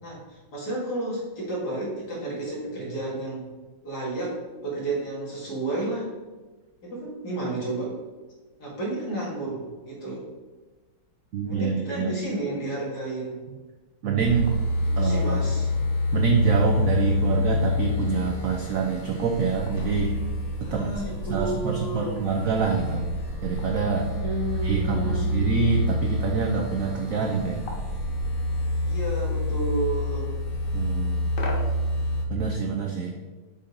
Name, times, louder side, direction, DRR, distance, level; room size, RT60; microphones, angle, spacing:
voice 1, 0.0-3.5 3.8-4.3 4.6-6.1 6.8-7.9 8.6-10.2 11.4-13.4 14.8-15.7 20.6-22.2 24.1-25.3 28.8-30.3, right 2 dB, 50° left, -5 dB, 2.4 m, -31 dB
voice 2, 11.3-12.1 14.0-14.5 15.0-15.4 16.1-20.1 20.7-20.9 21.3-23.1 23.4-24.1 24.6-27.7 30.7-31.3 32.3-33.1, right 5 dB, 85° right, 1 dB, 0.7 m, -26 dB
sound 1, 14.2-32.3, left 2 dB, 85° left, 0.4 m, -27 dB
5.6 x 3.9 x 5.2 m, 1.2 s
omnidirectional pair, 2.2 m